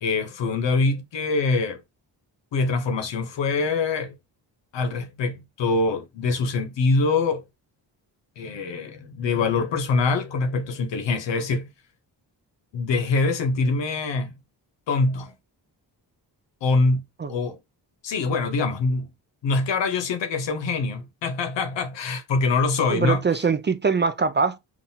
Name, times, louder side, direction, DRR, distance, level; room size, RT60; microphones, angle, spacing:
voice 1, 0.0-1.8 2.5-4.1 4.7-7.4 8.4-11.7 12.7-14.3 14.9-15.3 16.6-17.0 17.3-17.6 18.0-19.1 19.4-23.2, left 3 dB, 85° left, 0.8 m, -24 dB
voice 2, 22.9-24.6, right 5 dB, 25° right, 0.4 m, -23 dB
5.6 x 2.4 x 2.7 m
cardioid pair, 80°, 43 cm